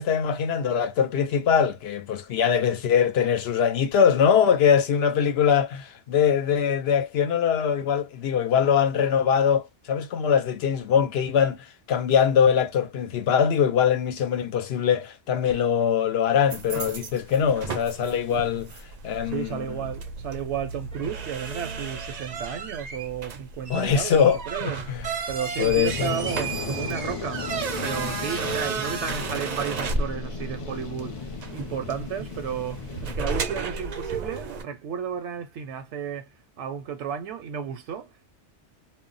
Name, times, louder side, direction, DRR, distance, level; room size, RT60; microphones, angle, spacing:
voice 1, 0.0-11.6 11.9-18.7 19.0-19.7 23.7-25.0 25.6-26.1 28.4-28.5, left 7 dB, 70° left, 0.8 m, -22 dB
sound 1, 16.5-34.6, right 4 dB, 50° right, 0.5 m, -33 dB
voice 2, 19.2-24.8 25.3-36.3 36.6-38.3, right 8 dB, 80° right, 0.9 m, -33 dB
Fire, 25.5-33.2, left 5 dB, 40° left, 0.5 m, -36 dB
2.2 x 2.0 x 3.7 m
omnidirectional pair, 1.2 m